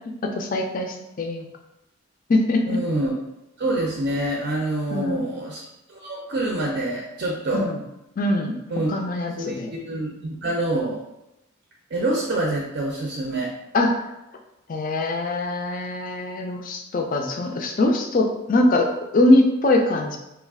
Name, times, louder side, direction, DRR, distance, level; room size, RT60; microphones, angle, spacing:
voice 1, 0.2-1.5 2.3-2.8 4.9-5.2 7.5-7.8 8.2-8.6 8.9-9.7 13.7-14.0 14.7-20.2, left 2 dB, 40° left, 3 dB, 0.4 m, -22 dB
voice 2, 2.7-3.1 3.6-5.6 5.9-7.7 8.7-8.9 9.4-11.0 11.9-13.5, right 1 dB, 50° right, -2 dB, 0.5 m, -26 dB
3.2 x 2.3 x 3.5 m, 0.90 s
head